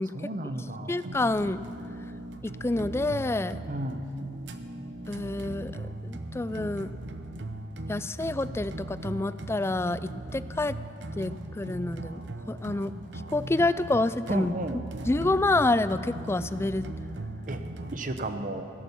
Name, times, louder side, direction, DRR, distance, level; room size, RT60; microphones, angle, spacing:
voice 1, 0.0-1.0 3.7-4.1 14.3-14.8 17.5-18.7, right 1 dB, 45° right, 8 dB, 0.8 m, -34 dB
voice 2, 0.9-1.6 2.4-3.6 5.1-6.9 7.9-10.7 11.2-12.2 12.5-12.9 13.3-14.6 15.0-16.9, left 2 dB, 15° left, 14 dB, 0.3 m, -28 dB
sound 1, 1.0-18.2, right 1 dB, 80° right, 0.9 m, -39 dB
17.0 x 11.0 x 7.0 m, 2.6 s
head